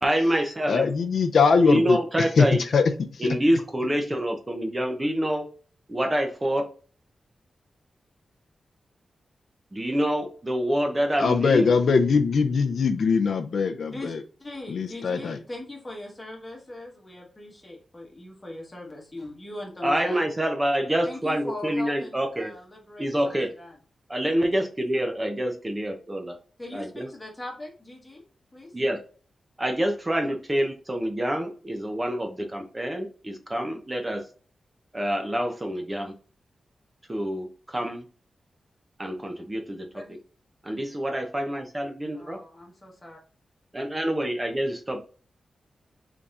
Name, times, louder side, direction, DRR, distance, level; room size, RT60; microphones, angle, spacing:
voice 1, 0.0-0.9 1.7-2.6 3.2-5.5 5.9-6.7 9.7-11.7 19.8-22.5 23.0-23.5 24.1-26.4 26.7-27.1 28.7-29.0 29.6-34.3 34.9-36.1 37.1-38.0 39.0-39.9 40.6-42.4 43.7-45.0, equal, 15° right, 4 dB, 0.5 m, -27 dB
voice 2, 0.7-2.0 2.4-2.5 2.7-2.8 11.2-14.2 14.7-15.4, left 5 dB, 70° left, 5 dB, 0.4 m, -21 dB
voice 3, 13.9-20.3 21.0-23.8 24.4-24.7 25.6-25.7 26.6-28.2 28.5-28.7 39.9-40.2 42.1-43.2, left 1 dB, 15° left, -1 dB, 1.2 m, -40 dB
4.0 x 3.4 x 2.4 m, 0.40 s
wide cardioid pair, 155°, 0 cm